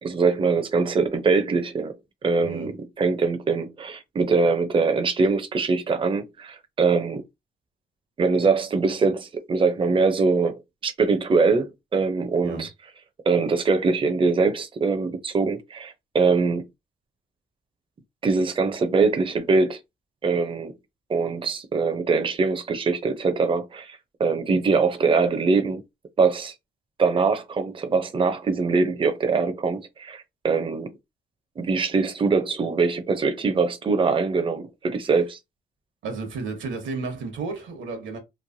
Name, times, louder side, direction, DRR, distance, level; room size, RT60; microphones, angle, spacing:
voice 1, 0.0-1.9 2.2-2.7 3.0-7.2 8.2-12.7 13.3-16.7 18.2-19.8 20.2-20.7 21.1-25.8 26.2-26.5 27.0-30.9 31.6-35.4, right 4 dB, 25° right, 0.5 m, -23 dB
voice 2, 12.4-12.7 36.0-38.2, right 4 dB, 75° right, 1.1 m, -32 dB
3.1 x 2.1 x 2.6 m
cardioid pair, 90°, 20 cm